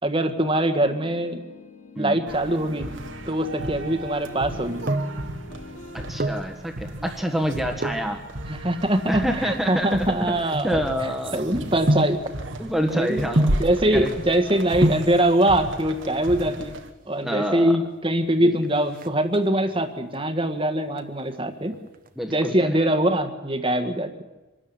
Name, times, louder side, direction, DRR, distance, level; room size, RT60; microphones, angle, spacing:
voice 1, 0.0-1.4 1.9-2.9 3.3-4.8 8.5-10.8 11.3-12.2 12.9-13.2 13.6-16.8 17.1-21.7 22.3-24.2, right 1 dB, 25° right, 8 dB, 1.6 m, -23 dB
sound 1, 0.8-6.1, left 2 dB, 35° left, 1.7 m, -42 dB
sound 2, 2.3-16.9, right 1 dB, 65° right, 1.6 m, -35 dB
sound 3, 4.7-5.3 6.0-6.5 7.8-8.1 8.9-11.3 11.9-12.3 13.4-13.8 14.5-14.6 14.8-15.2 16.3-16.8 17.1-17.2 17.4-17.6 18.0-18.4 18.7-19.7 20.1-20.6 20.9-22.1 22.4-22.5, right 1 dB, 45° right, 1.2 m, -26 dB
voice 2, 5.9-8.2 9.1-10.2 10.6-11.5 12.6-13.5 13.9-14.1 17.1-17.8 18.4-18.5 22.2-22.8, equal, ahead, 3 dB, 1.6 m, -27 dB
25.5 x 13.0 x 9.4 m, 1.1 s
head